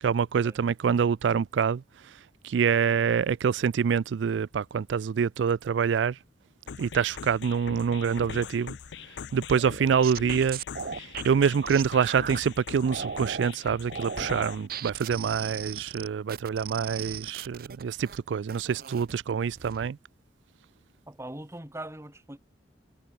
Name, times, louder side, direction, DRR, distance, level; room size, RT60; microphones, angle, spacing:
voice 1, 0.0-2.1 2.4-6.2 6.8-8.7 9.3-10.6 11.0-20.0, right 6 dB, 80° right, 0.4 m, -26 dB
sound 1, 6.7-14.7, left 6 dB, 70° left, 0.4 m, -42 dB
sound 2, 9.5-12.4 12.9-13.5 13.9-18.2 18.5-19.1 19.5-19.9, right 6 dB, 55° right, 0.8 m, -37 dB
voice 2, 21.1-22.4, right 1 dB, 15° right, 2.1 m, -41 dB
head